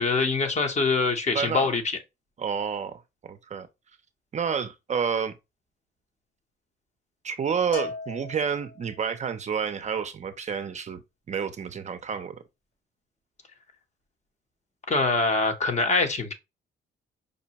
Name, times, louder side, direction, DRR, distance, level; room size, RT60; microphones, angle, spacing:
voice 1, 0.0-1.8 14.9-16.3, left 3 dB, 35° left, 0.8 m, -24 dB
voice 2, 1.3-1.7 2.4-3.7 4.3-5.4 7.2-11.0 11.3-12.4, right 7 dB, 35° right, 0.4 m, -29 dB
Bell, 7.7-9.1, left 4 dB, 60° left, 1.3 m, -37 dB
5.1 x 2.1 x 2.8 m
cardioid pair, 90°, 20 cm